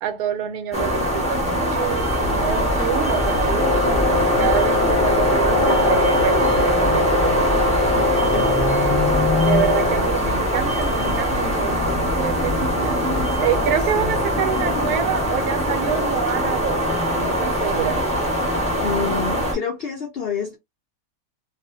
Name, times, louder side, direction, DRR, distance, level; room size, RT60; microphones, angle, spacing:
voice 1, 0.0-7.5 9.3-13.0 13.4-16.8 17.1-18.0, right 9 dB, 70° right, 1.1 m, -27 dB
sound 1, 0.7-19.5, equal, 5° left, 1.3 m, -22 dB
sound 2, 2.0-15.0, left 1 dB, 30° right, 0.9 m, -30 dB
Wind instrument woodwind instrument, 3.5-10.2, left 2 dB, 45° left, 0.8 m, -23 dB
voice 2, 8.3-9.2 9.6-10.0 14.0-14.1 18.8-20.6, left 6 dB, 85° left, 0.5 m, -29 dB
2.5 x 2.4 x 2.6 m
omnidirectional pair, 1.7 m